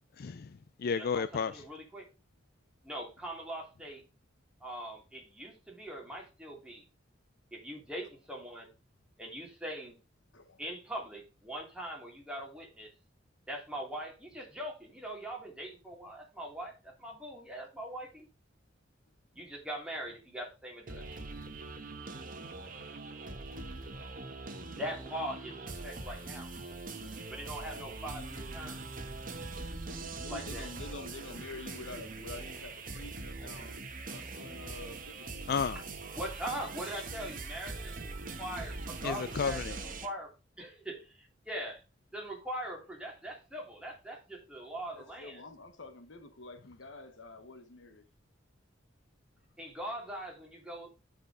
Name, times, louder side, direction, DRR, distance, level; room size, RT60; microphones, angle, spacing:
voice 1, 0.2-1.6 35.5-35.8 39.0-39.8, left 6 dB, 50° left, 0.4 m, -32 dB
voice 2, 0.9-2.0 2.8-4.0 4.6-6.9 7.5-8.7 9.2-10.0 10.6-12.9 13.5-18.3 19.3-21.0 24.7-26.5 27.3-28.8 30.3-30.7 36.1-40.3 40.6-41.8 42.1-45.4 49.6-50.9, right 1 dB, 5° right, 3.0 m, -41 dB
sound 1, 20.9-40.1, right 3 dB, 45° right, 1.3 m, -42 dB
voice 3, 30.1-33.8 34.1-35.4 44.9-48.0, left 2 dB, 70° left, 1.1 m, -48 dB
9.3 x 5.0 x 4.9 m
head